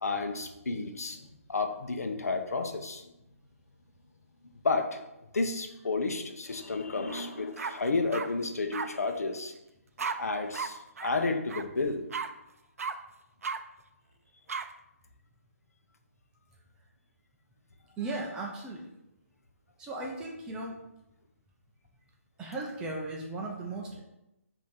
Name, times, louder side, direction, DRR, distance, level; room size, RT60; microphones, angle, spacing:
voice 1, 0.0-3.1 4.6-5.0 5.3-9.5 10.2-12.0, left 3 dB, 80° left, 5 dB, 0.7 m, -31 dB
sound 1, 7.1-7.2 7.6-8.3 8.7-8.9 10.0-10.2 10.5-10.7 11.0-11.1 11.5-11.6 12.1-12.3 12.8-12.9 13.4-13.6 14.5-14.6, right 5 dB, 70° right, 0.4 m, -34 dB
voice 2, 18.0-18.9 19.8-20.8 22.4-24.0, right 2 dB, 10° right, -2 dB, 0.4 m, -36 dB
5.2 x 2.7 x 3.6 m, 0.91 s
hypercardioid pair, 150°, 8 cm